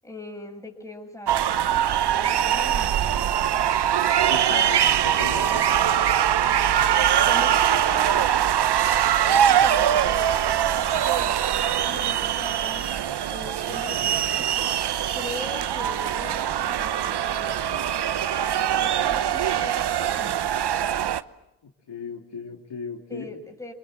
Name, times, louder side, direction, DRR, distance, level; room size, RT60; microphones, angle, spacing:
voice 1, 0.0-1.3 1.6-3.7 5.4-5.6 7.2-8.2 9.5-17.6 18.5-20.5 23.1-23.7, left 2 dB, 5° left, 2 dB, 6.8 m, -41 dB
sound 1, 1.3-21.2, right 10 dB, 50° right, 1.0 m, -22 dB
voice 2, 4.3-5.6 9.3-9.4 21.9-23.3, left 6 dB, 55° left, 2 dB, 3.0 m, -36 dB
27.0 x 21.5 x 9.1 m, 0.87 s
supercardioid pair, 65°, 50 cm